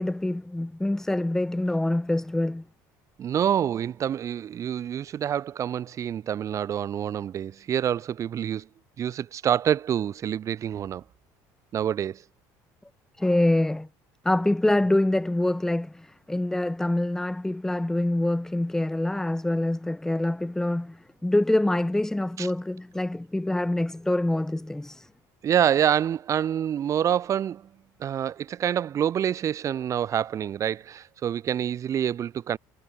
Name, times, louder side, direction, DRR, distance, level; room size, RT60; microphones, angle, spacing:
voice 1, 0.0-2.6 13.2-13.9 14.2-25.1, left 1 dB, 5° left, 2.8 m, -25 dB
voice 2, 3.2-8.7 9.0-11.0 11.7-12.2 22.4-22.5 25.4-27.7 28.0-32.6, right 9 dB, 40° right, 3.4 m, -27 dB
cardioid pair, 125°, 8 cm